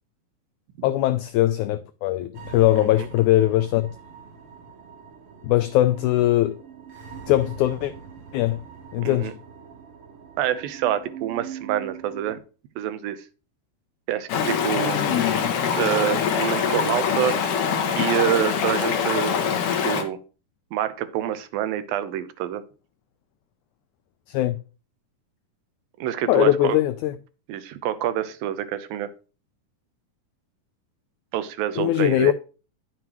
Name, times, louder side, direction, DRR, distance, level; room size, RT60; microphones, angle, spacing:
voice 1, 0.8-3.9 5.4-6.6 7.3-7.9 8.3-8.6 8.9-9.3 24.3-24.6 26.3-27.2 31.8-32.3, left 14 dB, 90° left, 1.7 m, -20 dB
sound 1, 2.3-12.4, right 7 dB, 55° right, 1.7 m, -42 dB
voice 2, 9.0-9.3 10.4-12.4 12.8-13.2 14.1-15.0 15.8-17.4 18.0-19.4 19.8-20.2 20.7-22.6 26.0-26.8 27.5-29.1 31.3-32.3, right 11 dB, 90° right, 2.7 m, -27 dB
Stream, 14.3-20.0, left 7 dB, 70° left, 2.6 m, -24 dB
10.5 x 7.7 x 3.0 m
omnidirectional pair, 4.0 m